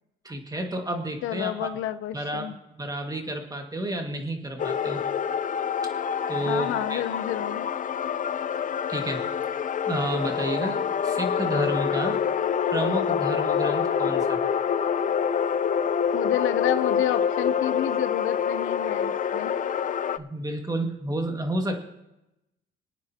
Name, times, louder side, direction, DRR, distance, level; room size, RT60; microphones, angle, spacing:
voice 1, 0.2-1.7 2.1-2.5 2.8-5.0 6.3-7.0 8.9-9.2 9.9-12.2 12.7-14.5 20.2-21.8, right 1 dB, 20° right, 4 dB, 1.9 m, -30 dB
voice 2, 1.2-2.6 6.4-7.7 16.1-19.5, left 12 dB, 85° left, 12 dB, 0.7 m, -30 dB
sound 1, 4.6-20.2, left 7 dB, 40° left, 0.5 m, -26 dB
25.0 x 9.1 x 2.9 m, 0.92 s
cardioid pair, 90°, 20 cm